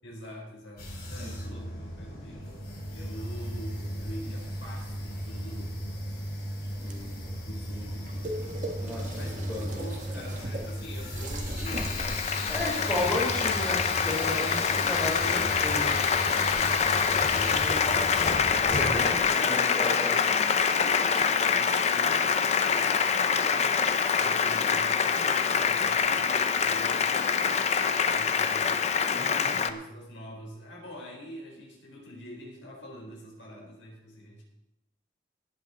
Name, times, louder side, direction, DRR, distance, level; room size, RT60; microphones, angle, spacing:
voice 1, 0.0-5.9 6.7-8.3 9.2-13.1 14.3-18.1 19.1-20.2 21.2-28.7 29.5-34.4, equal, 80° left, -2 dB, 4.5 m, -45 dB
sound 1, 0.8-19.2, equal, 55° left, 3.8 m, -36 dB
sound 2, 6.8-13.0, right 1 dB, 40° right, 1.6 m, -40 dB
voice 2, 8.8-9.6 12.5-14.6 14.9-15.9 17.5-18.1 18.7-20.4 29.1-29.6, left 1 dB, 5° left, -6 dB, 4.7 m, -33 dB
Applause, 11.7-29.7, left 6 dB, 35° left, 0.6 m, -25 dB
18.5 x 8.3 x 4.4 m, 0.91 s
head